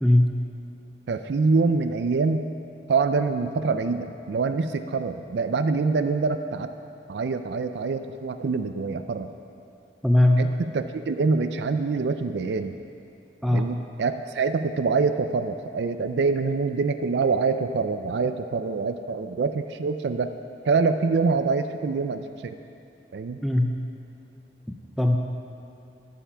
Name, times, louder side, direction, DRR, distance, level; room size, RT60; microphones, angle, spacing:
voice 1, 0.0-0.3 10.0-10.4 13.4-13.7 23.4-23.7 24.7-25.2, left 1 dB, ahead, 2 dB, 0.4 m, -20 dB
voice 2, 1.1-2.5 2.9-6.7 7.1-9.3 10.4-12.7 13.5-20.3 20.6-22.6 23.1-23.4, right 4 dB, 75° right, 9 dB, 0.4 m, -25 dB
14.5 x 5.7 x 6.1 m, 2.7 s
head